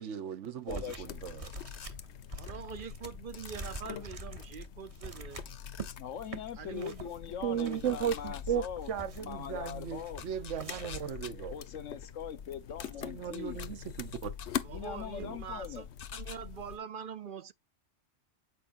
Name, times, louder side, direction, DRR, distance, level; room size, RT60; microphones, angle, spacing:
voice 1, 0.0-1.5 7.4-11.6 13.0-14.3 15.2-15.4, right 8 dB, 75° right, 1.2 m, -36 dB
voice 2, 0.7-1.1 6.0-8.9 9.2-10.2 11.5-13.6 14.7-15.8, left 8 dB, 90° left, 1.3 m, -41 dB
sound 1, 0.7-1.1 1.4-5.9 6.2-6.4 6.8-7.2 7.6-8.4 8.8-9.4 9.9-10.3 10.6-11.2, right 3 dB, 30° right, 1.0 m, -45 dB
sound 2, 1.0-16.8, left 8 dB, 70° left, 1.0 m, -44 dB
sound 3, 1.3-1.9 3.3-3.8 5.5-6.0 7.6-8.7 9.7-9.8 10.2-11.3 12.8-12.9 13.3-13.7 14.1-14.5 16.0-16.4, left 8 dB, 55° left, 0.5 m, -48 dB
voice 3, 2.4-5.4 6.5-7.1 14.6-15.9 16.1-17.5, right 7 dB, 55° right, 0.7 m, -44 dB
8.2 x 4.9 x 2.5 m
omnidirectional pair, 1.2 m